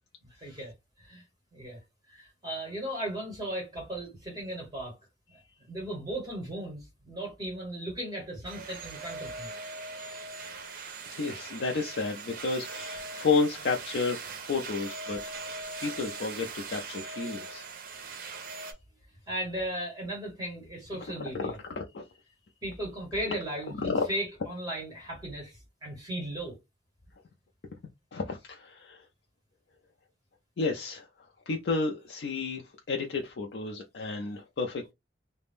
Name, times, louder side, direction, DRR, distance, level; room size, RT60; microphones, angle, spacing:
voice 1, 0.2-1.2 1.5-1.8 2.1-5.0 5.3-9.5 19.3-21.6 22.6-26.6, right 1 dB, 20° right, 1.3 m, -37 dB
sound 1, 8.4-18.7, right 3 dB, 50° right, 0.6 m, -41 dB
voice 2, 11.1-15.2 15.8-17.7 21.3-22.1 23.8-24.0 28.1-29.1 30.6-34.9, left 4 dB, 70° left, 0.4 m, -31 dB
2.5 x 2.1 x 3.4 m
head